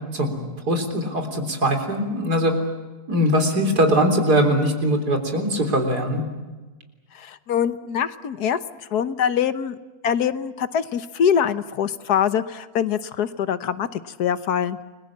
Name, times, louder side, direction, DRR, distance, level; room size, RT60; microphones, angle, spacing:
voice 1, 0.1-2.5 3.1-6.2, equal, 90° right, 4 dB, 4.2 m, -21 dB
voice 2, 7.1-8.6 8.9-9.8 10.0-14.8, left 8 dB, 80° left, 12 dB, 1.6 m, -23 dB
29.5 x 22.0 x 7.3 m, 1.3 s
omnidirectional pair, 1.7 m